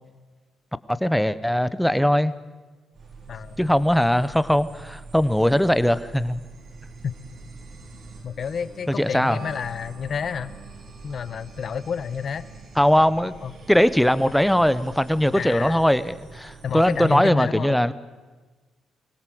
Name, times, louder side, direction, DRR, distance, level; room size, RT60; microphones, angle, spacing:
voice 1, 0.9-2.3 3.6-6.4 9.0-9.4 12.8-13.3 13.7-17.9, equal, ahead, 15 dB, 0.9 m, -20 dB
sound 1, 2.9-17.3, right 3 dB, 60° right, 4.3 m, -44 dB
voice 2, 3.3-3.6 7.0-7.1 8.2-10.6 11.0-12.4 13.4-13.5 15.3-15.8 16.6-17.8, left 6 dB, 50° left, 15 dB, 1.0 m, -29 dB
24.5 x 17.0 x 7.8 m, 1.3 s
cardioid pair, 90°, 0 cm